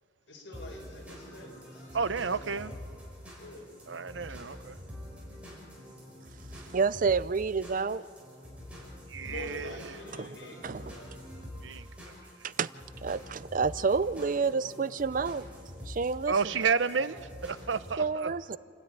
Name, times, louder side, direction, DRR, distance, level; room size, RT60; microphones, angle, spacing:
voice 1, 0.3-2.6 3.4-3.7 4.0-4.1 9.2-11.1, left 1 dB, 75° left, 5.2 m, -46 dB
sound 1, 0.5-18.0, left 1 dB, 5° right, 6.0 m, -46 dB
voice 2, 1.9-2.7 3.9-4.8 9.1-9.8 11.6-11.9 16.3-18.3, right 5 dB, 80° right, 0.7 m, -31 dB
voice 3, 6.5-8.0 10.2-10.4 10.6-11.0 12.4-12.7 13.0-15.5 15.9-16.3 18.0-18.6, right 5 dB, 45° right, 0.5 m, -29 dB
28.5 x 13.0 x 9.5 m
head